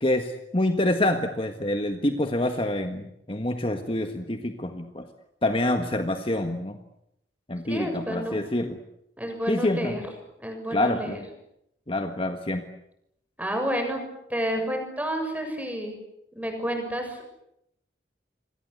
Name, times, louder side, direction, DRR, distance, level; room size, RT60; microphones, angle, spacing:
voice 1, 0.0-5.1 5.4-6.8 7.5-8.8 9.5-9.9 10.7-11.2 11.9-12.6, left 1 dB, 30° left, 6 dB, 1.6 m, -26 dB
voice 2, 7.7-8.4 9.2-10.0 10.4-11.2 13.4-14.0 14.3-16.0 16.3-17.3, equal, 10° right, 4 dB, 7.0 m, -30 dB
28.5 x 23.0 x 8.3 m, 0.80 s
head